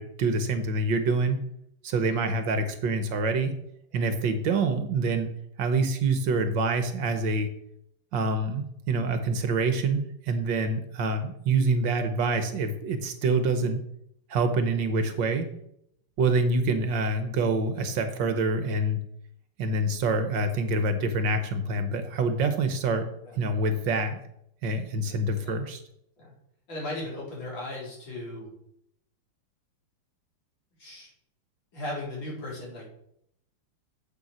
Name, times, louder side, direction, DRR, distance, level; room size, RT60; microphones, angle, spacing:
voice 1, 0.0-1.4 1.8-3.5 3.9-5.3 5.6-7.5 8.1-13.8 14.3-15.5 16.2-19.0 19.6-23.1 23.4-24.2 24.6-25.8, right 3 dB, 65° right, 8 dB, 1.5 m, -26 dB
voice 2, 1.9-2.2 3.9-4.1 23.2-23.4 25.4-25.6 26.2-26.3 26.7-28.5 30.8-31.1 31.7-32.9, left 2 dB, 60° left, -5 dB, 4.5 m, -37 dB
7.9 x 6.8 x 6.3 m, 0.74 s
omnidirectional pair, 2.4 m